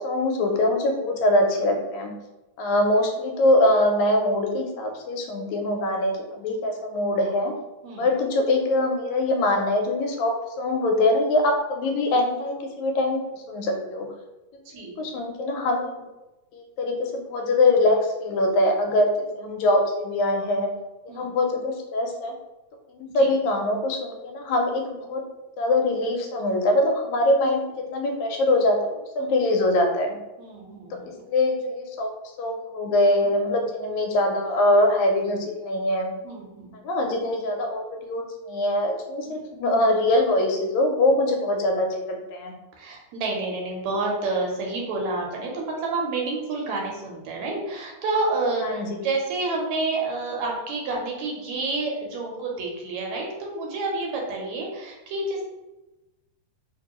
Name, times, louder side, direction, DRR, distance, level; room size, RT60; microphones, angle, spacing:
voice 1, 0.0-2.2 2.6-7.5 8.0-13.2 13.5-14.1 15.0-15.9 16.5-20.7 21.2-22.3 22.9-25.2 25.6-28.8 29.2-30.2 31.3-32.1 32.4-36.1 36.8-42.5 48.6-49.1, left 1 dB, 80° left, 2 dB, 1.9 m, -23 dB
voice 2, 14.7-15.0 21.1-21.4 23.1-23.3 29.2-29.3 30.4-31.2 33.2-33.4 36.2-36.8 39.2-39.4 41.1-41.2 42.8-55.4, right 3 dB, 75° right, -1 dB, 1.9 m, -29 dB
4.4 x 2.6 x 2.9 m, 1.0 s
omnidirectional pair, 3.3 m